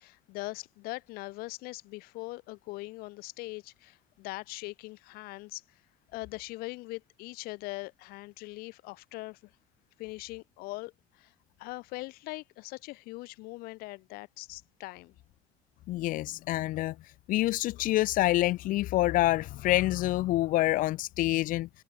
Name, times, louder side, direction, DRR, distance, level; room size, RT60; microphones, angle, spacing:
voice 1, 0.0-5.6 6.1-9.5 10.0-11.3 11.6-15.2, left 22 dB, 80° left, 5.5 m, -41 dB
voice 2, 15.9-16.9 17.3-21.7, left 16 dB, 65° left, 0.9 m, -27 dB
open air
cardioid pair, 130°, 15 cm